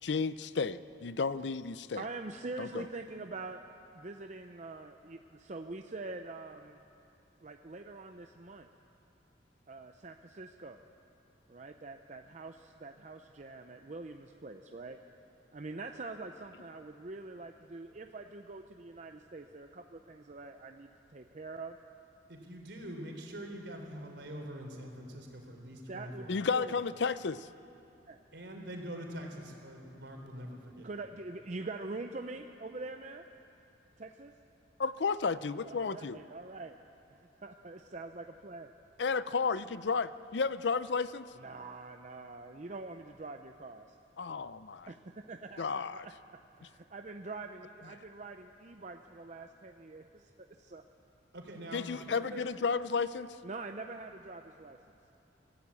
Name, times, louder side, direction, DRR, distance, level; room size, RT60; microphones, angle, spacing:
voice 1, 0.0-2.0 2.6-2.9 26.3-27.5 34.8-36.2 39.0-41.3 44.2-44.9 45.6-46.1 51.7-53.4, left 5 dB, 70° left, 15 dB, 0.5 m, -32 dB
voice 2, 1.9-3.6 3.9-6.8 7.4-8.7 9.7-10.8 11.5-15.0 15.5-21.8 25.9-26.8 28.1-28.2 30.8-33.3 34.0-34.3 35.6-36.8 37.1-38.7 41.4-43.9 44.9-45.8 46.6-50.8 53.4-54.8, right 3 dB, 40° right, 5 dB, 0.6 m, -44 dB
voice 3, 22.3-26.6 28.3-31.0 51.3-52.4, equal, 75° right, 2 dB, 3.6 m, -44 dB
24.0 x 15.0 x 8.4 m, 2.8 s
head